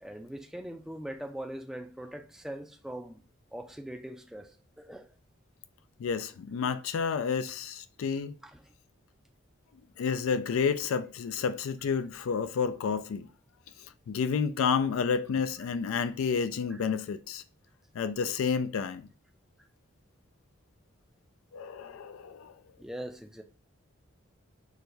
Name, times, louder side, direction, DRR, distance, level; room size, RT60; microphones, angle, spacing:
voice 1, 0.0-3.2 3.5-5.1 8.5-8.6 22.8-23.4, right 1 dB, ahead, 0.3 m, -41 dB
voice 2, 6.0-8.4 10.0-13.3 14.1-17.4 17.9-19.1 21.5-22.5, left 6 dB, 85° left, 0.3 m, -30 dB
6.1 x 2.2 x 2.6 m
head